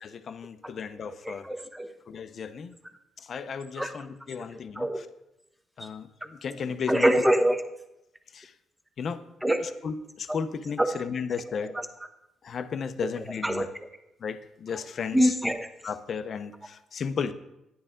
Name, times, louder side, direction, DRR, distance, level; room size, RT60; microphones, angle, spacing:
voice 1, 0.0-1.5 2.1-2.8 3.2-4.9 5.8-7.3 8.3-8.5 9.0-9.2 9.6-11.7 12.4-13.7 14.2-15.3 15.8-17.3, left 6 dB, 55° left, 10 dB, 0.7 m, -34 dB
voice 2, 1.2-1.9 3.8-3.9 4.8-5.0 5.8-5.9 6.9-7.6 9.4-9.6 10.3-10.4 10.8-10.9 11.7-11.9 13.0-13.1 13.4-13.7 15.1-15.7, right 1 dB, 5° right, 7 dB, 1.1 m, -24 dB
10.5 x 9.8 x 3.7 m, 0.88 s
cardioid pair, 90°, 0 cm